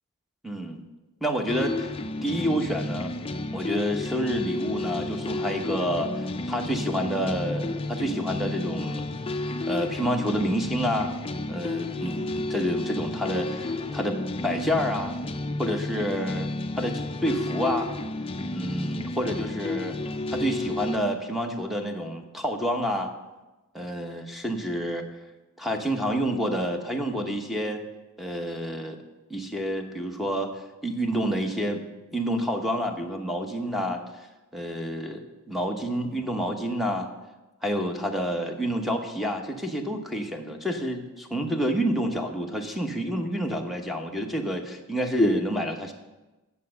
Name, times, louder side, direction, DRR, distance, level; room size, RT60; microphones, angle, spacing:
voice 1, 0.4-0.8 1.2-1.9 2.2-3.1 3.5-9.1 9.7-11.2 11.5-15.2 15.6-16.5 16.8-17.9 18.5-20.0 20.3-23.1 23.7-25.0 25.6-27.8 28.2-29.0 29.3-30.5 30.8-31.8 32.1-34.0 34.5-35.2 35.5-37.1 37.6-45.9, equal, ahead, 4 dB, 0.9 m, -28 dB
sound 1, 1.5-21.0, left 2 dB, 25° left, 0.4 m, -31 dB
8.3 x 6.9 x 6.4 m, 1.1 s
head